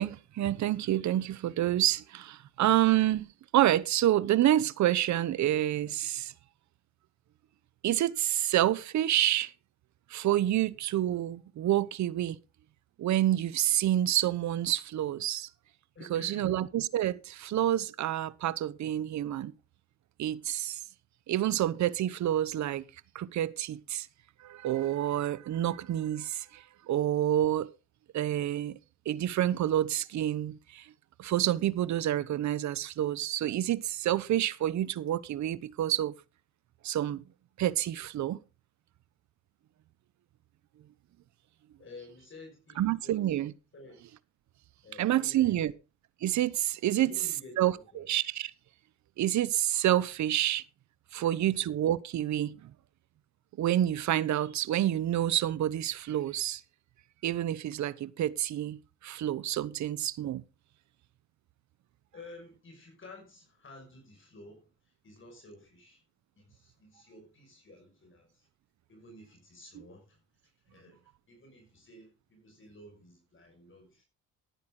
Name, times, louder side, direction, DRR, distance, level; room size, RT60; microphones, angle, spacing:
voice 1, 0.0-6.3 7.8-9.5 10.1-12.4 13.0-15.5 16.1-19.5 20.2-20.8 21.3-22.8 23.1-24.1 24.4-27.7 28.1-28.8 29.1-30.9 31.2-36.2 36.8-37.2 37.6-38.4 42.8-43.5 45.0-45.7 46.2-47.1 47.6-48.5 49.2-50.6 51.1-52.7 53.6-56.6 57.2-60.4, right 12 dB, 70° right, 0.9 m, -28 dB
voice 2, 15.9-16.6 41.8-43.4 43.7-44.0 44.8-45.7 46.9-48.0 51.1-51.6 62.1-66.0 66.4-68.5 68.9-74.1, left 2 dB, 40° left, 5.8 m, -52 dB
14.5 x 11.0 x 3.8 m
cardioid pair, 90°, 30 cm